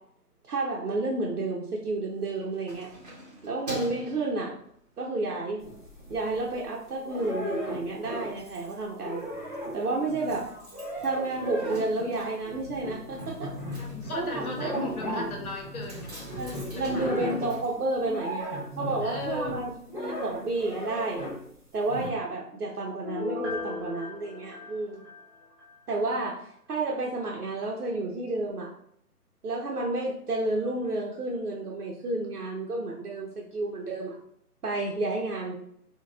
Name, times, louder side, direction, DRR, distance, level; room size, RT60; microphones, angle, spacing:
voice 1, 0.5-2.9 3.4-4.5 5.0-5.6 6.1-9.2 9.7-10.5 11.0-13.5 14.1-14.7 16.4-18.5 18.8-19.7 20.0-21.2 21.7-25.0 25.9-26.4 26.7-28.7 29.4-34.2 34.6-35.6, right 2 dB, 70° right, -2 dB, 0.7 m, -31 dB
Keys jangling, 2.1-5.1 5.6-5.8 6.2-6.9 7.1-7.2 7.5-7.6 7.8-18.6 18.9-19.0, right 1 dB, 25° right, 0.9 m, -47 dB
sound 1, 5.6-6.7 7.0-8.5 8.8-21.5 21.9-22.1, right 1 dB, 35° left, 0.4 m, -36 dB
voice 2, 10.2-10.7 13.8-17.3 19.0-19.6, left 3 dB, 65° left, 1 dB, 1.0 m, -38 dB
Piano, 23.0-25.7 26.1-26.2, left 4 dB, 5° right, 1.2 m, -37 dB
3.9 x 2.3 x 2.4 m, 0.67 s
figure-of-eight pair, 150°, 47 cm